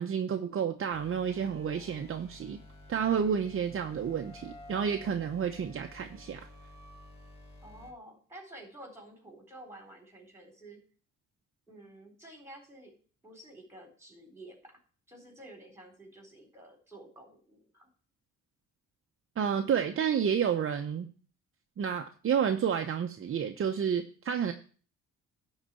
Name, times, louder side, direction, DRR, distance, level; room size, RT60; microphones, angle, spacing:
voice 1, 0.0-2.6 2.9-6.5 19.4-21.1 21.8-24.5, right 7 dB, 45° right, 5 dB, 0.8 m, -30 dB
sound 1, 0.9-7.9, left 2 dB, 20° left, 2.7 m, -51 dB
voice 2, 7.6-10.8 11.7-12.9 13.2-14.7 15.1-17.9, right 1 dB, 10° right, 2 dB, 3.9 m, -51 dB
11.0 x 4.1 x 7.6 m, 0.41 s
cardioid pair, 90°, 30 cm